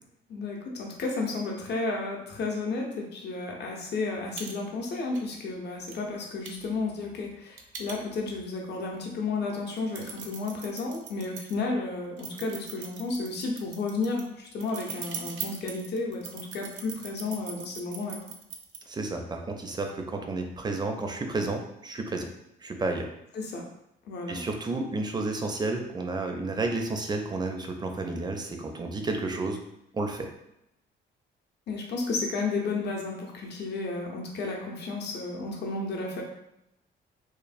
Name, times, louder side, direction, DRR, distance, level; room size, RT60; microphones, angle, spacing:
voice 1, 0.3-18.2 23.3-23.6 24.0-24.4 31.7-36.2, left 3 dB, 60° left, 0 dB, 0.7 m, -32 dB
sound 1, 4.0-4.1 4.4-4.5 4.8-5.2 5.9-6.0 6.5-8.4 8.9-9.0 9.5-11.6 12.2-18.8, right 6 dB, 75° right, 0.4 m, -41 dB
voice 2, 18.9-22.3 22.6-23.1 24.3-29.6 29.9-30.3, right 2 dB, 20° right, 3 dB, 0.4 m, -31 dB
3.1 x 2.1 x 2.5 m, 0.82 s
cardioid pair, 90°, 20 cm